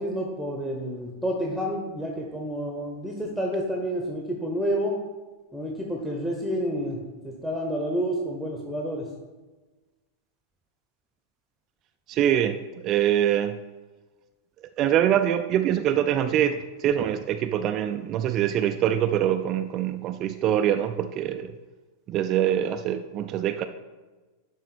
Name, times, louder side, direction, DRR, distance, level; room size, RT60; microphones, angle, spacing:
voice 1, 0.0-5.0 5.5-7.0 7.2-9.1, equal, ahead, 0 dB, 1.0 m, -29 dB
voice 2, 12.1-13.6 14.8-21.5 22.1-23.6, right 10 dB, 35° right, 7 dB, 0.4 m, -24 dB
11.0 x 3.9 x 4.4 m, 1.2 s
figure-of-eight pair, 90°, 0 cm